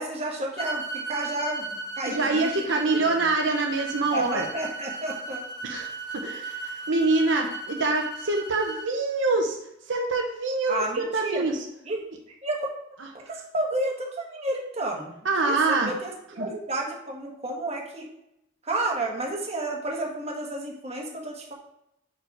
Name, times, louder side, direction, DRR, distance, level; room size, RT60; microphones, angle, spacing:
voice 1, 0.0-2.6 3.0-3.2 4.1-5.4 10.7-11.4 11.9-12.0 12.4-12.7 13.1-18.1 18.6-21.5, right 2 dB, 35° right, -1 dB, 1.3 m, -31 dB
sound 1, 0.6-8.9, right 2 dB, 20° left, 1.8 m, -36 dB
voice 2, 2.1-4.5 5.6-6.6 6.9-9.6 9.9-11.6 15.2-15.9 16.4-16.5, right 3 dB, 80° right, 2 dB, 0.8 m, -25 dB
5.5 x 4.8 x 4.7 m, 0.81 s
head